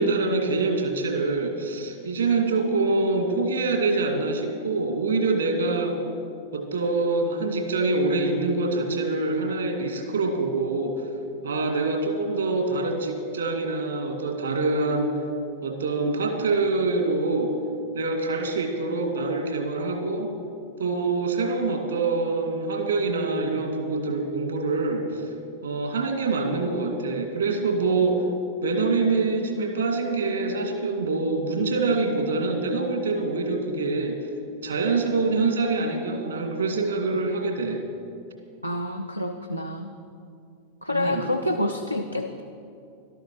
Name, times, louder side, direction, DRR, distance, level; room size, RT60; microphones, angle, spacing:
voice 1, 0.0-6.0 6.5-11.0 11.4-15.2 15.6-17.5 17.9-20.3 20.8-25.3 25.6-28.3 28.6-34.2 34.6-37.8 40.9-41.3, right 3 dB, 70° right, 4 dB, 2.2 m, -25 dB
voice 2, 38.6-39.9 40.8-42.4, left 1 dB, 90° left, 4 dB, 0.6 m, -28 dB
13.0 x 12.5 x 6.2 m, 2.5 s
figure-of-eight pair, 90°, 0 cm